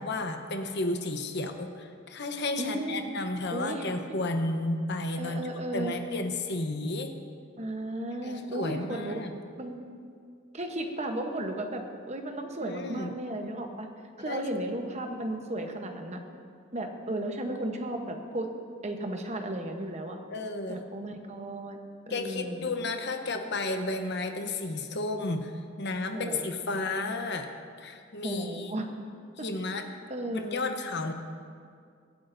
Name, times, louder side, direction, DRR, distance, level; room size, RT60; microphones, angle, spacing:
voice 1, 0.0-7.1 8.2-9.3 12.6-13.1 14.2-14.4 20.3-20.8 22.1-27.5 27.8-28.7 29.4-29.9 30.3-31.1, left 2 dB, 55° left, 6 dB, 0.9 m, -32 dB
voice 2, 2.6-3.1 3.5-3.8 5.2-5.9 7.6-9.1 9.6-9.8 10.5-13.9 14.2-16.2 16.7-18.5 18.8-20.2 20.7-21.8 22.1-22.6 26.1-26.8 28.2-28.9 30.1-30.7, right 1 dB, 35° right, 4 dB, 1.0 m, -34 dB
24.0 x 8.5 x 2.7 m, 2.2 s
head